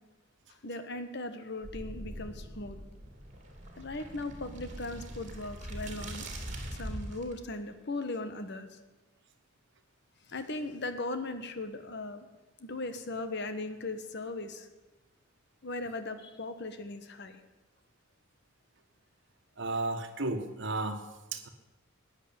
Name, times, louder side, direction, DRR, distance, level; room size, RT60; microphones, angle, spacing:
voice 1, 0.5-2.8 3.8-6.3 6.7-8.8 10.3-12.3 12.6-14.7 15.6-17.4, left 2 dB, 55° left, 9 dB, 1.3 m, -38 dB
sound 1, 1.6-7.3, right 1 dB, 35° right, 2.9 m, -42 dB
voice 2, 19.6-21.5, right 2 dB, 60° right, 5 dB, 1.6 m, -34 dB
14.0 x 9.7 x 8.8 m, 1.1 s
head